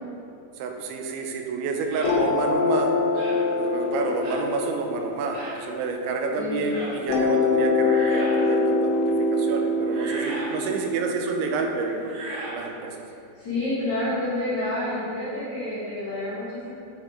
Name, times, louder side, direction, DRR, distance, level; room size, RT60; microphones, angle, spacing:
voice 1, 0.6-2.9 3.5-9.0 9.3-12.1 12.5-13.0, right 4 dB, 85° right, 2 dB, 3.0 m, -29 dB
sound 1, 1.9-2.2 3.1-3.4 4.2-4.5 5.3-5.6 6.6-7.0 7.7-8.5 9.8-10.6 12.0-12.6, right 1 dB, 65° right, 2.6 m, -37 dB
sound 2, 2.0-6.4 7.1-12.0, left 3 dB, 80° left, 2.4 m, -25 dB
voice 2, 6.4-6.7 13.4-16.7, left 1 dB, 50° left, -11 dB, 2.5 m, -28 dB
8.8 x 5.4 x 3.7 m, 2.6 s
omnidirectional pair, 5.3 m